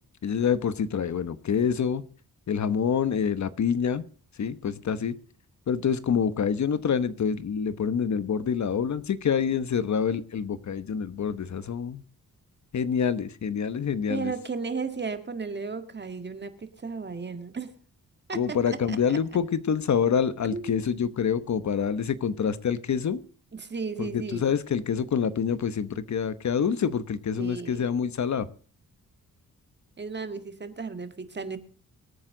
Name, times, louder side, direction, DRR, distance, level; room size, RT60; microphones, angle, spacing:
voice 1, 0.2-2.0 2.5-4.1 4.4-5.1 5.7-12.0 12.7-14.3 18.3-23.2 24.0-28.5, left 7 dB, 55° left, 14 dB, 1.0 m, -26 dB
voice 2, 14.1-17.7 18.3-19.2 20.5-20.8 23.5-24.6 27.4-27.9 30.0-31.6, right 4 dB, 30° right, 9 dB, 1.8 m, -35 dB
24.5 x 9.1 x 3.8 m, 0.42 s
wide cardioid pair, 130°, 33 cm